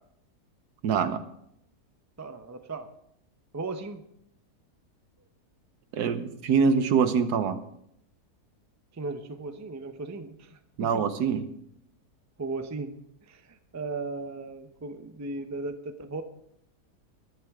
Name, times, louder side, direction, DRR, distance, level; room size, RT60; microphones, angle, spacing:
voice 1, 0.8-1.2 5.9-7.6 10.8-11.4, right 6 dB, 75° right, 11 dB, 1.4 m, -24 dB
voice 2, 2.2-2.9 3.5-4.0 8.9-11.0 12.4-16.2, right 3 dB, 20° right, 8 dB, 0.5 m, -37 dB
21.0 x 11.0 x 3.6 m, 0.75 s
omnidirectional pair, 1.7 m